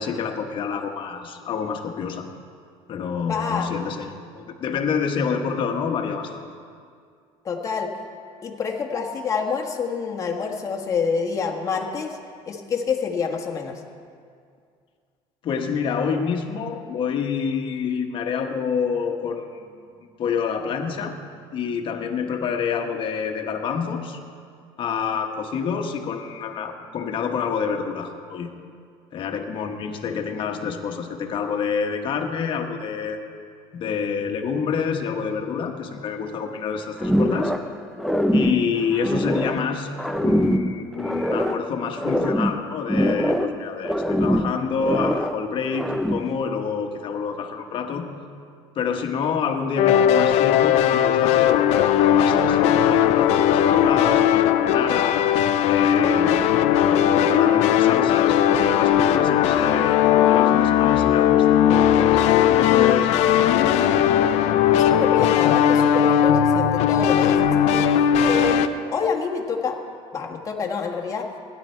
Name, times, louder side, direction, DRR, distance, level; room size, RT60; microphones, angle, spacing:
voice 1, 0.0-2.3 2.9-6.5 15.4-19.7 20.2-21.1 21.5-24.2 24.8-28.5 29.1-33.2 33.7-37.5 38.3-39.9 40.2-48.1 48.7-55.2 55.6-62.2 62.5-63.5, left 6 dB, 45° left, 4 dB, 1.3 m, -28 dB
voice 2, 3.3-3.7 7.4-7.9 8.4-12.2 12.5-13.8 64.8-67.4 67.7-68.6 68.9-69.8 70.1-71.3, left 6 dB, 30° left, 0 dB, 1.5 m, -27 dB
sound 1, 37.0-37.7 38.0-39.6 40.0-41.6 42.0-43.6 43.8-45.4 45.7-46.4, equal, ahead, 0.5 m, -23 dB
sound 2, 49.8-68.7, left 9 dB, 70° left, 0.6 m, -18 dB
16.5 x 10.5 x 4.5 m, 2.2 s
cardioid pair, 125°, 12 cm